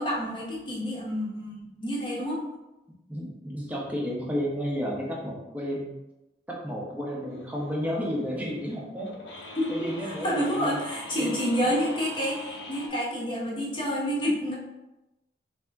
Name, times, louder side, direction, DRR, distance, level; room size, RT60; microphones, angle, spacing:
voice 1, 0.0-2.4 9.6-14.5, equal, 30° left, -4 dB, 1.0 m, -29 dB
voice 2, 3.1-5.9 6.5-9.1 9.7-10.8 11.1-11.3, equal, 10° right, -3 dB, 0.8 m, -32 dB
sound 1, 7.3-12.9, left 1 dB, 85° left, 0.7 m, -43 dB
3.5 x 2.8 x 3.4 m, 0.99 s
head